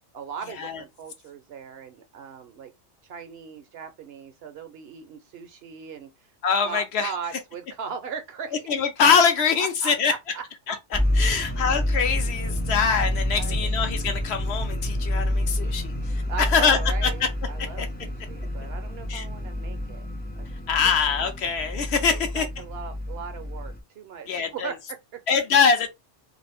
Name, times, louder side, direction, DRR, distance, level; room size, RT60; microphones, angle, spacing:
voice 1, 0.0-2.7 3.1-6.1 6.6-8.6 9.6-10.4 11.2-11.7 13.3-13.7 16.3-20.1 20.4-20.5 22.1-25.2, right 6 dB, 65° right, 0.7 m, -38 dB
voice 2, 6.4-7.1 8.7-10.2 10.7-15.9 16.4-17.3 17.8-17.9 19.1-19.3 20.7-22.5 24.3-24.7 25.3-25.9, left 6 dB, 65° left, 0.8 m, -23 dB
sound 1, 10.9-23.8, left 1 dB, 15° left, 0.3 m, -28 dB
2.5 x 2.4 x 3.3 m
omnidirectional pair, 1.2 m